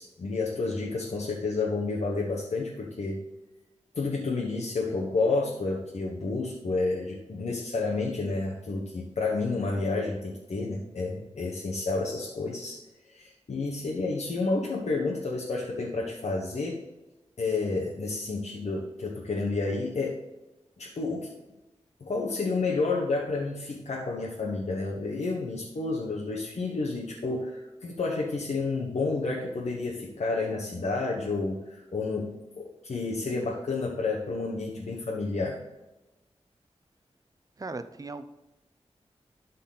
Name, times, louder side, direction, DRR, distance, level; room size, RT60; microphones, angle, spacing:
voice 1, 0.0-3.2 3.9-12.8 13.1-16.8 17.4-20.2 20.8-21.3 22.0-35.6, left 3 dB, 75° left, -3 dB, 1.1 m, -30 dB
voice 2, 37.6-38.2, right 3 dB, 30° right, 10 dB, 0.6 m, -37 dB
12.5 x 4.2 x 4.1 m, 1.0 s
wide cardioid pair, 95°, 12 cm